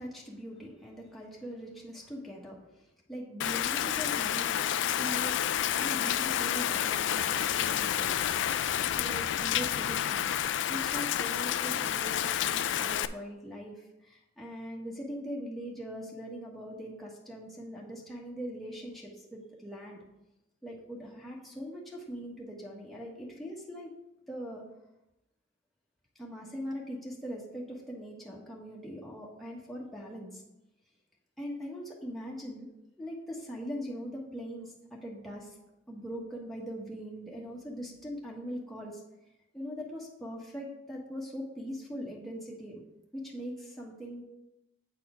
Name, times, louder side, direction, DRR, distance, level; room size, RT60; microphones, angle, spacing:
voice 1, 0.0-2.6 3.1-5.4 5.7-8.1 9.0-10.3 10.7-13.8 14.0-20.0 20.6-23.9 24.3-24.6 26.2-30.4 31.4-32.7 33.0-35.6 35.9-39.0 39.5-42.8 43.1-44.2, equal, ahead, -4 dB, 1.2 m, -41 dB
Rain, 3.4-13.1, left 10 dB, 75° left, 0.3 m, -29 dB
8.3 x 4.3 x 4.9 m, 0.90 s
head